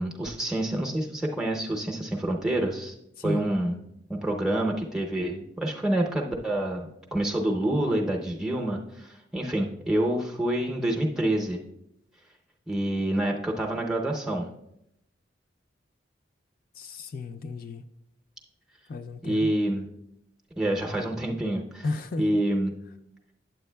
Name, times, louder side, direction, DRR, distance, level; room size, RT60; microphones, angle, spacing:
voice 1, 0.0-2.9 3.2-3.7 4.1-11.6 12.7-14.5 19.2-19.8 20.6-21.8 22.2-22.7, right 1 dB, 5° right, 0 dB, 0.6 m, -27 dB
voice 2, 3.2-3.5 16.7-17.8 18.9-19.5 21.8-22.4, left 3 dB, 50° left, 9 dB, 0.4 m, -33 dB
9.0 x 7.7 x 2.2 m, 0.80 s
head